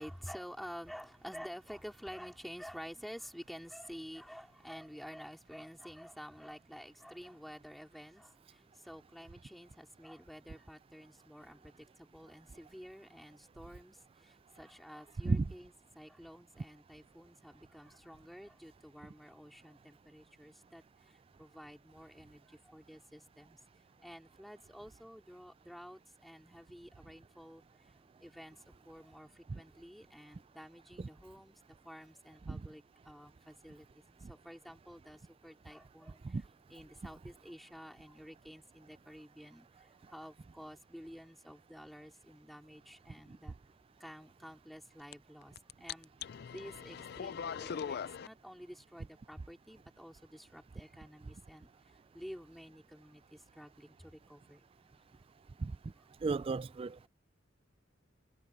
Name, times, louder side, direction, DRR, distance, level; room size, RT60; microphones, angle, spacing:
voice 1, 0.0-23.6 24.0-27.6 28.2-33.9 34.3-43.6 44.0-46.1 46.5-54.6 56.0-56.1, equal, ahead, 3.5 m, -51 dB
sound 1, 45.1-45.2 45.4-48.3, left 7 dB, 55° left, 0.4 m, -40 dB
voice 2, 56.2-57.1, right 3 dB, 30° right, 0.3 m, -33 dB
head